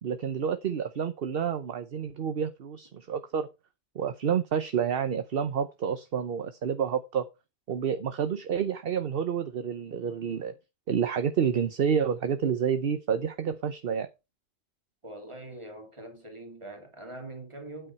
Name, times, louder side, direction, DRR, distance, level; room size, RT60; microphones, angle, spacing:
voice 1, 0.0-3.5 3.9-7.3 7.7-10.5 10.9-14.1, right 7 dB, 50° right, 0.9 m, -29 dB
voice 2, 15.0-17.9, right 2 dB, 20° right, 2.4 m, -43 dB
9.1 x 7.5 x 4.4 m
omnidirectional pair, 1.3 m